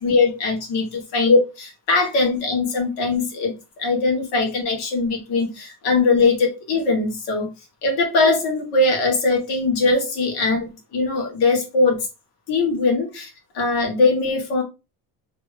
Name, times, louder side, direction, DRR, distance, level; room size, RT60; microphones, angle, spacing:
voice 1, 0.0-3.5 3.8-7.5 7.8-12.1 12.5-13.3 13.5-14.6, left 3 dB, 85° left, 1.7 m, -20 dB
3.3 x 3.3 x 3.3 m
cardioid pair, 130°, 37 cm